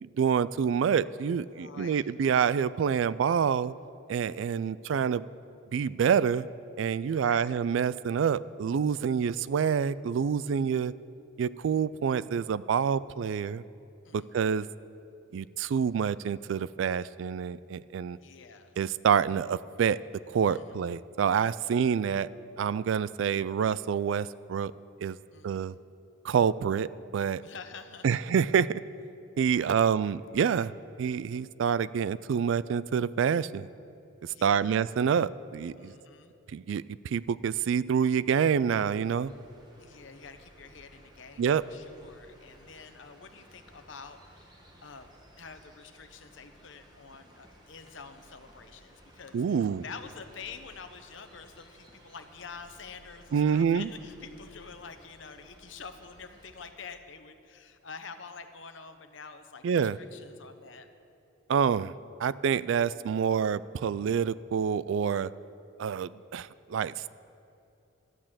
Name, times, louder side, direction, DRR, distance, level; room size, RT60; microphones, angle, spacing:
voice 1, 0.0-3.7 4.1-5.2 5.7-6.5 6.8-10.9 11.4-13.6 14.1-14.7 15.3-18.2 18.8-20.0 20.3-22.3 22.6-24.7 25.0-25.2 25.4-25.8 26.2-27.4 28.0-28.8 29.4-30.7 31.0-33.7 34.2-35.9 36.5-39.3 41.4-41.6 49.3-49.8 53.3-53.9 59.6-60.0 61.5-61.9 62.2-65.3 65.8-67.1, right 7 dB, 70° right, 19 dB, 0.3 m, -27 dB
voice 2, 1.5-2.1 7.1-7.6 14.0-14.4 18.2-18.8 20.5-20.9 25.3-25.8 27.4-28.2 34.3-34.8 35.8-36.4 39.8-60.9, left 5 dB, 65° left, 8 dB, 0.9 m, -47 dB
sound 1, 38.7-56.7, equal, 20° right, 1.3 m, -57 dB
12.5 x 8.7 x 7.5 m, 2.8 s
head